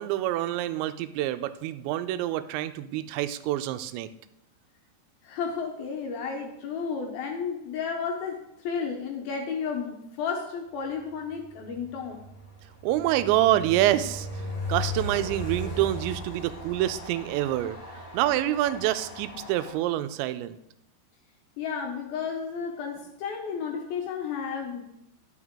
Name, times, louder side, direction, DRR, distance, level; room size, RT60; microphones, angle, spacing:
voice 1, 0.0-4.1 12.8-17.8 18.1-20.6, right 13 dB, 85° right, 11 dB, 2.8 m, -27 dB
voice 2, 5.2-12.2 21.6-24.8, left 6 dB, 75° left, 1 dB, 2.3 m, -32 dB
Train, 11.3-19.7, left 1 dB, 35° left, 1.8 m, -37 dB
11.0 x 6.3 x 3.6 m, 0.81 s
omnidirectional pair, 5.1 m